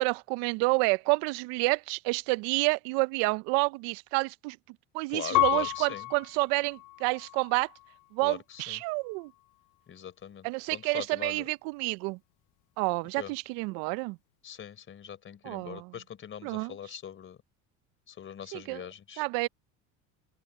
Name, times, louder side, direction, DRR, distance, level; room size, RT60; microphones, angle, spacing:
voice 1, 0.0-4.6 4.9-7.7 8.1-9.3 10.4-12.2 12.8-14.2 15.4-15.9 16.4-16.8 18.5-18.8 19.2-19.5, right 26 dB, 80° right, 0.6 m, -29 dB
voice 2, 5.1-6.1 8.2-8.8 9.9-11.5 13.2-13.3 14.4-17.4 18.1-19.2, left 9 dB, 35° left, 3.9 m, -42 dB
Piano, 5.3-8.1 8.7-9.4, left 20 dB, 60° left, 0.5 m, -32 dB
open air
cardioid pair, 125°, 35 cm